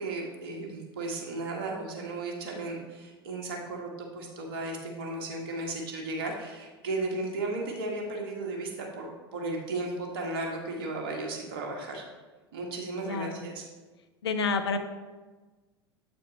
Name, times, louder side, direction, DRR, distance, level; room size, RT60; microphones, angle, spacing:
voice 1, 0.0-12.0 12.5-13.7, right 2 dB, 65° right, 0 dB, 1.6 m, -35 dB
voice 2, 13.0-13.5 14.2-14.8, left 4 dB, 75° left, 8 dB, 0.6 m, -29 dB
8.0 x 4.4 x 4.2 m, 1.3 s
figure-of-eight pair, 80°, 13 cm